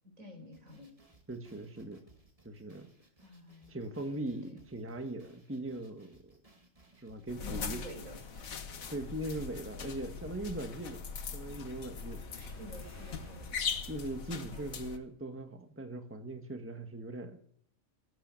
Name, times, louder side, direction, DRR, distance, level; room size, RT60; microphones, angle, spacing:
voice 1, 0.0-0.9 3.2-4.6 7.4-8.7 12.3-13.6 14.4-14.8, left 1 dB, 75° right, 2 dB, 5.4 m, -51 dB
sound 1, 0.5-8.9, right 2 dB, 25° right, 2.1 m, -64 dB
voice 2, 1.3-2.0 2.4-2.9 3.7-6.3 7.0-7.8 8.9-11.1 11.3-12.2 13.9-17.4, right 1 dB, 10° right, 7 dB, 1.2 m, -40 dB
sound 2, 7.3-15.0, left 6 dB, 80° left, 1.7 m, -41 dB
sound 3, 10.4-15.3, right 2 dB, 10° left, 2.4 m, -57 dB
17.5 x 9.4 x 7.4 m, 0.63 s
omnidirectional pair, 1.4 m